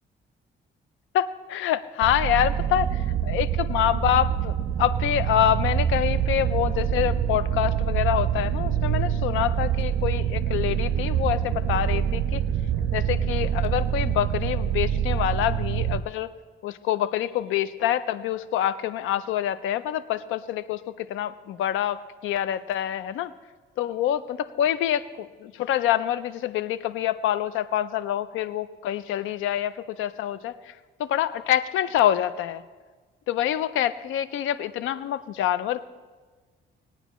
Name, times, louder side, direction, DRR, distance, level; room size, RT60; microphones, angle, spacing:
voice 1, 1.1-12.4 12.8-16.3 16.6-23.3 23.8-30.7 31.0-32.6 33.3-35.8, left 11 dB, 85° left, 15 dB, 0.5 m, -26 dB
sound 1, 2.0-16.0, right 9 dB, 65° right, 0.6 m, -25 dB
20.0 x 9.2 x 3.1 m, 1.4 s
cardioid pair, 90°, 20 cm